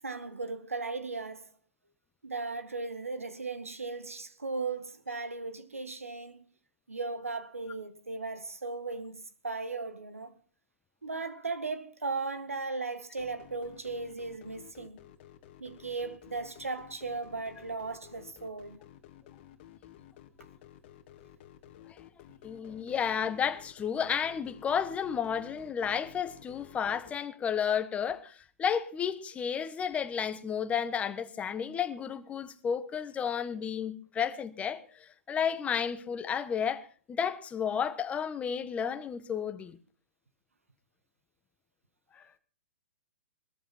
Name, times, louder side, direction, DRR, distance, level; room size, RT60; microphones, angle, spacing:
voice 1, 0.0-1.5 2.2-6.5 6.9-10.3 11.0-15.0 15.6-18.8, right 3 dB, 90° right, 1.8 m, -37 dB
sound 1, 13.2-27.1, left 11 dB, 45° left, 2.0 m, -53 dB
voice 2, 22.4-39.8 42.1-42.2, left 7 dB, 15° left, 1.4 m, -32 dB
20.5 x 14.0 x 4.4 m
hypercardioid pair, 120°, 7 cm